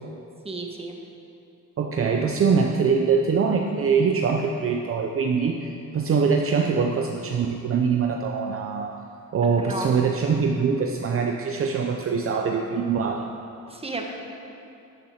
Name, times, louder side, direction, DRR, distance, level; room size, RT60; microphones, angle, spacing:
voice 1, 0.4-0.9 9.6-9.9 13.7-14.0, right 2 dB, 20° right, 1 dB, 1.4 m, -32 dB
voice 2, 1.8-9.0 9.3-13.3, right 5 dB, 45° right, 3 dB, 0.7 m, -23 dB
13.0 x 6.8 x 5.9 m, 2.7 s
cardioid pair, 110°, 30 cm